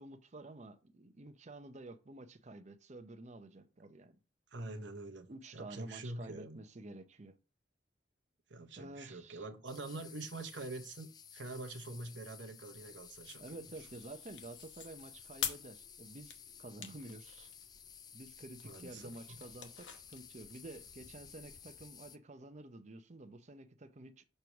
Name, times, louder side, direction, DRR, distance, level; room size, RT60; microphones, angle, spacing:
voice 1, 0.0-4.2 5.3-7.4 8.8-9.5 13.4-17.5 18.1-24.2, right 2 dB, 40° right, 0.7 m, -50 dB
voice 2, 4.5-5.3 5.5-6.6 8.5-13.7 18.6-19.4, right 2 dB, 75° right, 0.9 m, -45 dB
sound 1, 9.7-22.2, left 8 dB, 20° left, 0.3 m, -55 dB
sound 2, 12.7-21.6, left 8 dB, 75° left, 1.0 m, -48 dB
6.6 x 3.1 x 5.8 m
head